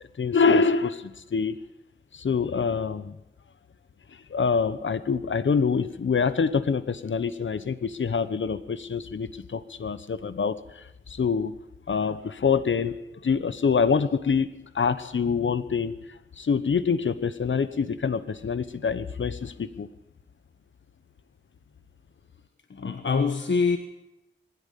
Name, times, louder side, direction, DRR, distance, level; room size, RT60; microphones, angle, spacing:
voice 1, 0.2-1.6 2.1-3.2 4.3-11.6 11.9-12.9 13.2-16.0 16.4-19.9, left 5 dB, 90° left, 14 dB, 1.1 m, -25 dB
voice 2, 22.7-23.8, left 4 dB, 75° left, 7 dB, 1.4 m, -24 dB
20.5 x 16.5 x 8.5 m, 0.89 s
wide cardioid pair, 80°, 19 cm